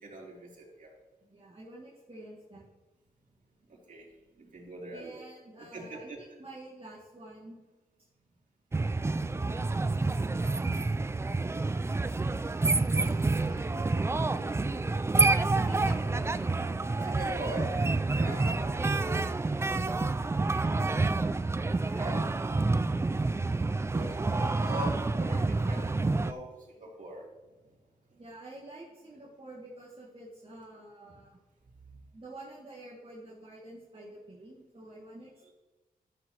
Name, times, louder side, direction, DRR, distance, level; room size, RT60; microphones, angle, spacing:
voice 1, 0.0-0.9 3.7-4.1 4.4-5.2 5.7-6.2 17.0-17.8 18.1-18.8 21.9-22.2 23.2-27.2 31.9-32.0, right 1 dB, 55° right, -3 dB, 3.0 m, -41 dB
voice 2, 1.2-2.7 4.9-7.6 9.3-10.7 12.3-15.2 15.6-16.4 18.1-20.0 20.7-21.1 23.9-24.9 28.2-31.4 32.1-35.5, right 2 dB, 35° right, -6 dB, 2.2 m, -48 dB
sound 1, 8.7-26.3, right 3 dB, 15° right, 0.3 m, -28 dB
13.5 x 6.9 x 3.0 m, 1.2 s
cardioid pair, 80°, 16 cm